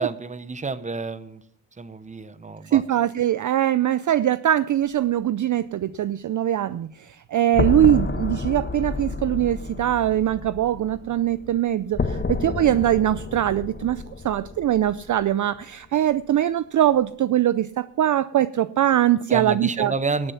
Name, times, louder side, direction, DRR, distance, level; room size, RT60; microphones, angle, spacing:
voice 1, 0.0-1.4 1.8-2.8 19.3-20.3, right 4 dB, 15° right, 13 dB, 0.8 m, -29 dB
voice 2, 2.7-19.9, right 12 dB, 45° right, 15 dB, 0.4 m, -22 dB
sound 1, 7.5-15.6, left 4 dB, 25° left, 1.1 m, -30 dB
19.0 x 6.9 x 5.7 m, 0.69 s
cardioid pair, 100°, 42 cm